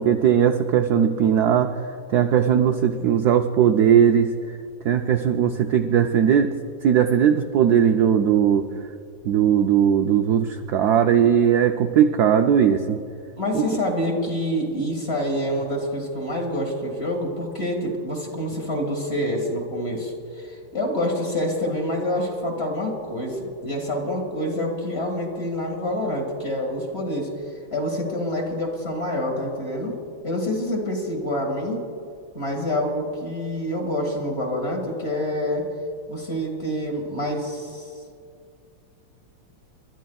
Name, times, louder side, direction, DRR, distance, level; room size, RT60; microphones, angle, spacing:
voice 1, 0.0-1.7 2.1-4.3 4.8-6.5 6.8-8.7 9.3-13.0 13.5-13.6, right 8 dB, 80° right, 5 dB, 0.9 m, -18 dB
voice 2, 13.4-27.3 27.7-30.0 30.2-31.8 32.3-35.6 36.1-37.9, left 1 dB, 30° left, 0 dB, 1.9 m, -27 dB
29.0 x 12.5 x 2.3 m, 2.3 s
omnidirectional pair, 2.2 m